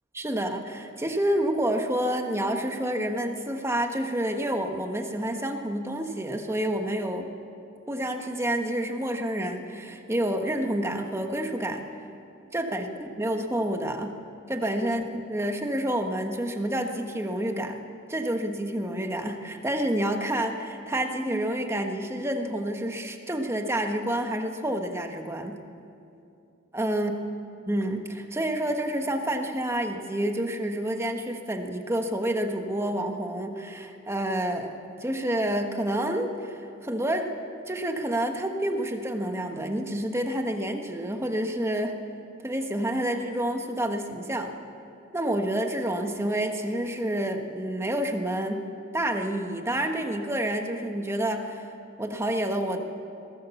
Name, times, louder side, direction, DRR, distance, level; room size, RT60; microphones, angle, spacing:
voice 1, 0.1-7.3 7.9-11.8 12.5-14.1 14.5-17.8 18.1-25.6 26.7-27.1 27.7-37.3 37.7-41.9 42.4-44.6 45.1-48.6 48.9-51.7 52.0-52.8, right 1 dB, 15° right, 5 dB, 1.3 m, -28 dB
22.0 x 17.5 x 7.1 m, 2.6 s
head